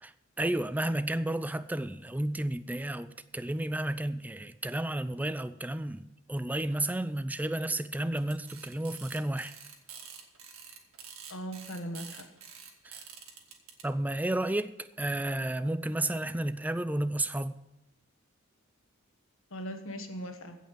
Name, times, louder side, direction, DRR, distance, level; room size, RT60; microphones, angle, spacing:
voice 1, 0.0-6.0 6.3-9.5 12.8-13.0 13.8-17.6, right 1 dB, 10° right, 0.4 m, -32 dB
sound 1, 8.2-13.8, right 7 dB, 80° right, 1.9 m, -47 dB
voice 2, 11.3-12.3 19.5-20.6, equal, 70° left, 1.5 m, -39 dB
15.5 x 5.6 x 7.5 m
head